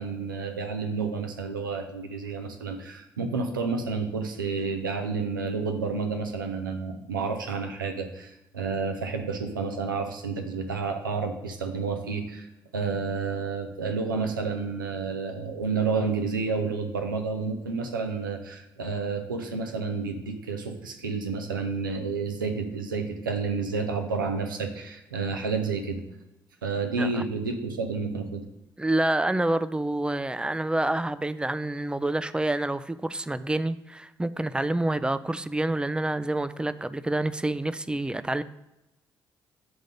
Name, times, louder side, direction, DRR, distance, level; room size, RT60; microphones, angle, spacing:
voice 1, 0.0-26.0 26.6-28.5, right 4 dB, 90° right, 5 dB, 0.7 m, -30 dB
voice 2, 28.8-38.4, right 1 dB, 10° right, 14 dB, 0.5 m, -27 dB
8.1 x 3.8 x 5.3 m, 0.95 s
figure-of-eight pair, 45°, 11 cm